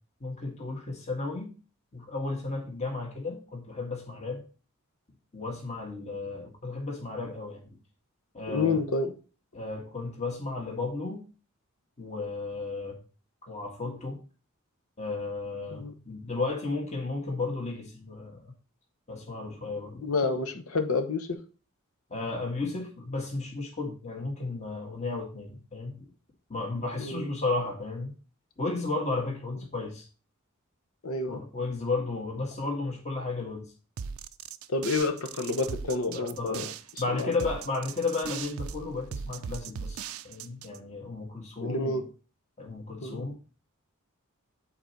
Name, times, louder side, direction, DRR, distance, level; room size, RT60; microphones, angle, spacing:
voice 1, 0.2-1.5 1.9-4.4 5.3-7.8 8.3-8.8 9.5-11.2 12.0-13.0 13.4-14.2 15.0-18.5 19.1-20.1 22.1-26.1 26.5-28.1 28.6-30.1 31.3-33.6 36.1-36.7 37.0-42.0 42.6-43.4, left 3 dB, 35° left, 1.7 m, -33 dB
voice 2, 8.5-9.1 15.7-16.0 20.0-21.4 27.0-27.3 31.0-31.4 34.7-36.7 37.1-37.3 41.6-42.1 43.0-43.3, left 3 dB, 80° left, 0.9 m, -29 dB
sound 1, 34.0-40.8, right 7 dB, 80° right, 0.4 m, -39 dB
7.7 x 4.2 x 4.5 m
head